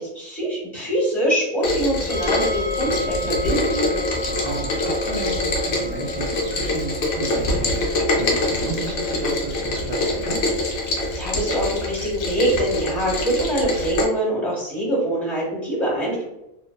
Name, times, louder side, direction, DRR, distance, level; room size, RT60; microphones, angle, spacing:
voice 1, 0.0-3.9 11.2-16.2, right 1 dB, 30° left, -5 dB, 1.1 m, -24 dB
Rain, 1.6-14.0, left 1 dB, 65° left, 0.8 m, -25 dB
sound 1, 2.1-15.1, left 3 dB, 45° right, 0.7 m, -35 dB
voice 2, 4.1-10.4, right 2 dB, 75° right, -1 dB, 1.1 m, -33 dB
2.6 x 2.1 x 2.2 m, 0.89 s
omnidirectional pair, 1.5 m